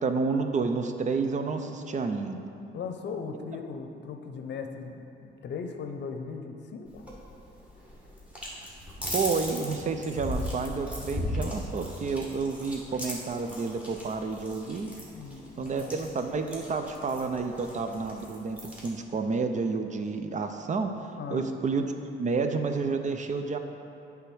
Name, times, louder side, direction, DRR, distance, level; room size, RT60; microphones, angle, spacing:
voice 1, 0.0-2.5 9.1-14.9 15.6-20.9 21.3-21.8 22.2-23.6, right 4 dB, 40° right, 6 dB, 0.5 m, -30 dB
voice 2, 2.7-7.0 15.1-16.0 21.2-21.5, left 5 dB, 60° left, 5 dB, 0.7 m, -38 dB
sound 1, 6.9-18.9, left 1 dB, 5° right, 1.7 m, -38 dB
8.0 x 3.4 x 6.1 m, 2.7 s
cardioid pair, 90°, 20 cm